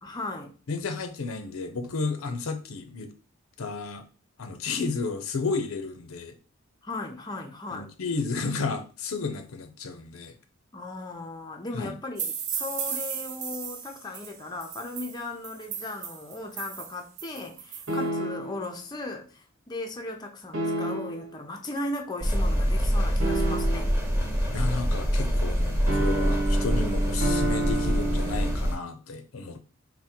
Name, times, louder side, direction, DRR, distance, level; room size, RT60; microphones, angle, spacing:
voice 1, 0.0-0.5 6.8-7.9 10.7-23.9, left 2 dB, 20° left, 0.5 m, -37 dB
voice 2, 0.7-3.1 3.6-4.0 4.4-6.4 7.7-10.3 11.7-12.0 24.5-29.6, left 4 dB, 90° left, 0.6 m, -32 dB
sound 1, 12.2-18.0, right 7 dB, 35° right, 0.4 m, -36 dB
sound 2, 17.9-18.7 20.5-21.3 23.2-24.0 25.9-28.6, right 2 dB, 75° right, 1.3 m, -29 dB
sound 3, 22.2-28.8, equal, 10° right, 1.0 m, -25 dB
3.6 x 2.1 x 4.2 m
head